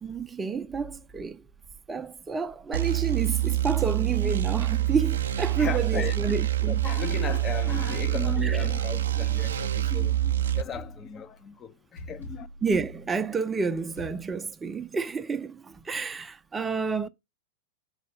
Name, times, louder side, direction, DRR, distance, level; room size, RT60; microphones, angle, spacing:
voice 1, 0.0-1.4 1.9-6.8 8.4-8.6 12.6-17.1, right 5 dB, 15° right, 0.6 m, -30 dB
sound 1, 2.7-10.6, right 14 dB, 65° right, 0.6 m, -26 dB
voice 2, 5.6-6.2 6.7-12.5, left 7 dB, 25° left, 0.7 m, -36 dB
sound 2, 10.0-11.5 12.0-13.5 14.0-14.2, left 1 dB, 80° left, 5.4 m, -44 dB
6.4 x 4.9 x 6.6 m
figure-of-eight pair, 90°, 0 cm